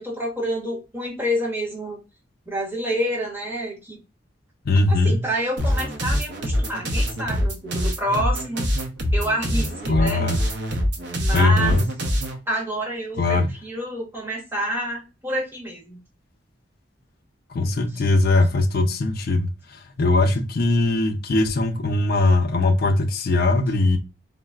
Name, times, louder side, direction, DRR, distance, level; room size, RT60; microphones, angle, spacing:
voice 1, 0.0-2.0 2.5-4.0 4.9-8.7 9.1-10.2 11.2-11.8 12.5-16.0, equal, 10° right, 1.0 m, -28 dB
voice 2, 4.7-5.2 9.9-10.4 11.3-11.9 13.2-13.5 17.5-24.0, left 2 dB, 55° left, 0.4 m, -20 dB
sound 1, 5.6-12.4, equal, 65° right, 0.6 m, -24 dB
3.8 x 2.1 x 2.3 m
head